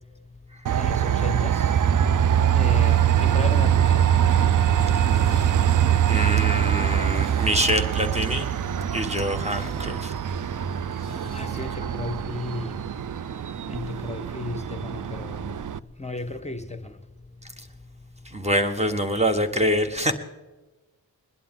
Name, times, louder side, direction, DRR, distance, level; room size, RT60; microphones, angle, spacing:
Train, 0.6-15.8, right 10 dB, 55° right, 0.5 m, -23 dB
voice 1, 0.7-1.7 2.5-4.1 11.3-12.8 13.7-15.5 16.0-17.0, left 3 dB, 15° left, 9 dB, 0.9 m, -34 dB
Zipper (clothing), 5.0-8.1 8.4-8.5 8.9-9.0 9.2-11.7 11.9-12.0, equal, 35° right, 6.3 m, -45 dB
voice 2, 6.1-8.5 8.9-10.1 18.2-20.1, equal, 15° right, 6 dB, 1.4 m, -25 dB
21.0 x 11.5 x 3.8 m, 1.2 s
wide cardioid pair, 60°, 38 cm